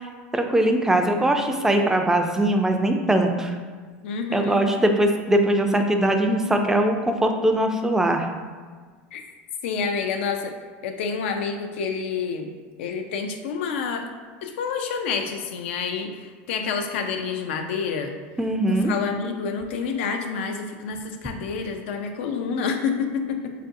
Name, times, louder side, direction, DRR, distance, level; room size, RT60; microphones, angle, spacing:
voice 1, 0.3-3.5 4.3-8.3 18.4-18.9, right 1 dB, 10° right, 4 dB, 0.3 m, -21 dB
voice 2, 4.0-4.6 9.1-9.2 9.6-10.5 10.8-12.5 12.8-14.1 14.4-18.1 18.7-23.5, left 5 dB, 80° left, 5 dB, 0.4 m, -28 dB
3.8 x 2.5 x 2.5 m, 1.5 s
supercardioid pair, 105°, 6 cm